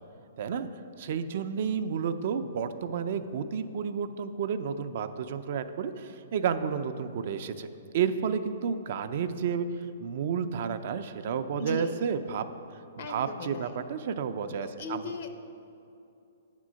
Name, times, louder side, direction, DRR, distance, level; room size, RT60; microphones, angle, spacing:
voice 1, 0.4-0.7 1.0-7.7 7.9-9.7 10.0-12.5 13.1-15.0, right 7 dB, 55° right, 9 dB, 0.4 m, -31 dB
voice 2, 11.6-11.9 13.0-13.8 14.8-15.3, left 2 dB, 60° left, 7 dB, 0.7 m, -37 dB
8.8 x 3.7 x 6.2 m, 2.6 s
hypercardioid pair, 140°, 0 cm